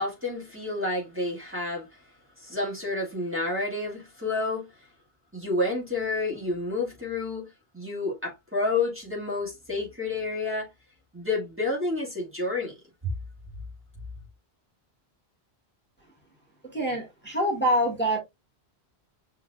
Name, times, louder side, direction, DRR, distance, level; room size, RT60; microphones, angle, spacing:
voice 1, 0.0-2.0 2.4-4.7 5.3-7.5 7.7-10.7 11.1-12.7 13.0-13.1, left 2 dB, 10° right, 1.8 m, -29 dB
voice 2, 16.6-18.2, equal, 10° left, 1.7 m, -25 dB
6.5 x 3.2 x 2.2 m
omnidirectional pair, 1.1 m